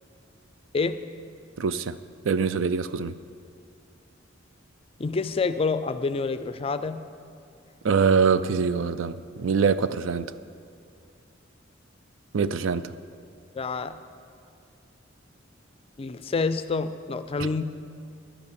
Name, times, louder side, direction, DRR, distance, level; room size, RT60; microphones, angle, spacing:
voice 1, 1.6-2.0 2.2-3.1 7.8-10.3 12.3-12.9 17.4-17.5, right 5 dB, 75° right, 14 dB, 0.4 m, -24 dB
voice 2, 5.0-7.0 13.5-14.0 16.0-17.6, left 4 dB, 30° left, 12 dB, 0.4 m, -27 dB
11.0 x 8.4 x 6.9 m, 2.4 s
head